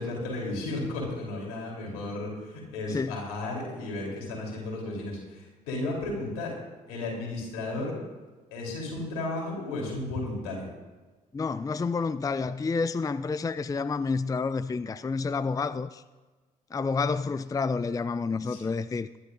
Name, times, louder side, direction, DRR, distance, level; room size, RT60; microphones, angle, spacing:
voice 1, 0.0-6.6 6.9-8.0 8.5-10.7 18.4-18.6, left 2 dB, 80° left, 3.8 m, -34 dB
voice 2, 11.3-16.0 16.7-19.1, left 4 dB, 20° left, 0.4 m, -29 dB
22.0 x 11.5 x 2.7 m
hypercardioid pair, 45°, 19 cm